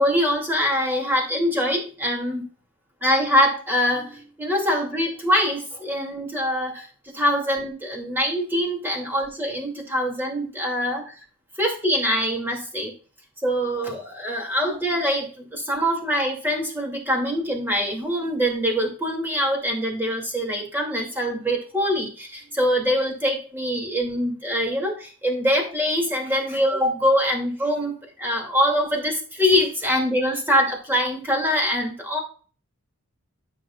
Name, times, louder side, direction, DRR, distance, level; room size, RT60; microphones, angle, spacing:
voice 1, 0.0-2.4 3.0-6.9 7.1-11.1 11.6-12.9 13.4-32.2, equal, 10° right, 0 dB, 2.4 m, -24 dB
12.5 x 6.4 x 2.4 m, 0.38 s
head